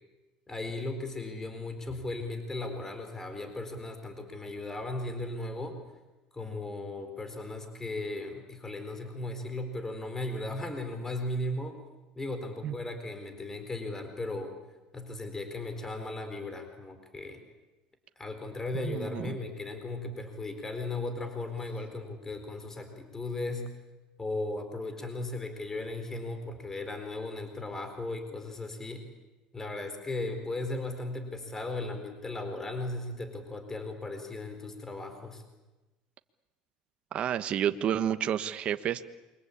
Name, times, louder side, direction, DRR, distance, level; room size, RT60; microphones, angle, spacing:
voice 1, 0.5-5.8 6.3-11.8 12.2-14.6 14.9-17.4 18.2-23.7 24.2-29.1 29.5-35.4, left 2 dB, 15° left, 7 dB, 4.3 m, -36 dB
voice 2, 18.7-19.4 37.1-39.0, right 10 dB, 45° right, 9 dB, 1.4 m, -30 dB
28.5 x 24.0 x 8.6 m, 1.1 s
supercardioid pair, 115°, 3 cm